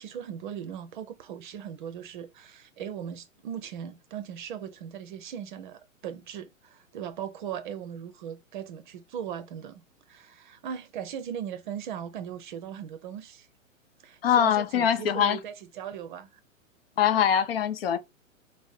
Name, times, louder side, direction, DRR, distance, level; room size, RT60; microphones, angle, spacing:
voice 1, 0.0-13.5 14.0-16.3, right 9 dB, 40° right, 0.7 m, -38 dB
voice 2, 14.2-15.4 17.0-18.0, left 9 dB, 45° left, 0.6 m, -23 dB
4.5 x 2.1 x 4.2 m
figure-of-eight pair, 115°, 40 cm